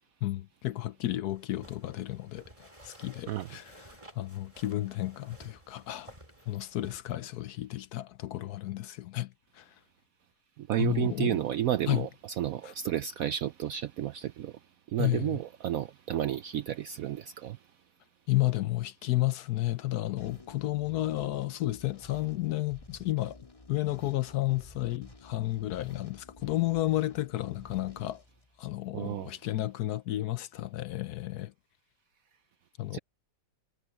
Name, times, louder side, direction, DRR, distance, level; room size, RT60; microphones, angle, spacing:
voice 1, 0.2-6.2 6.5-9.7 10.8-11.4 11.9-12.1 12.6-12.7 15.0-15.4 18.3-23.4 23.7-28.2 28.6-31.5 32.8-33.0, left 16 dB, 70° left, 1.0 m, -32 dB
sound 1, 1.3-7.0, right 1 dB, 15° right, 5.1 m, -54 dB
voice 2, 10.6-12.1 12.4-17.6 28.9-29.3 32.9-33.0, right 12 dB, 75° right, 0.8 m, -32 dB
sound 2, 20.2-29.0, left 1 dB, 20° left, 2.2 m, -53 dB
omnidirectional pair, 1.9 m